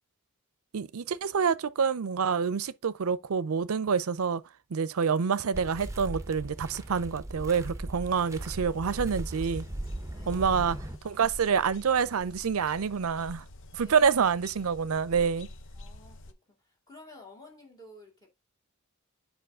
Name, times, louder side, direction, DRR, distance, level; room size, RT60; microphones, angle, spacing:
voice 1, 0.7-4.4 4.7-9.6 10.3-10.8 11.0-13.4 13.7-15.5, right 6 dB, 75° right, 0.5 m, -27 dB
sound 1, 5.5-11.0, right 1 dB, 15° right, 0.7 m, -38 dB
sound 2, 8.0-16.3, left 1 dB, 60° left, 0.8 m, -46 dB
voice 2, 10.1-10.6 13.8-14.0 15.7-18.3, left 2 dB, 20° left, 2.4 m, -52 dB
7.8 x 4.7 x 3.6 m
head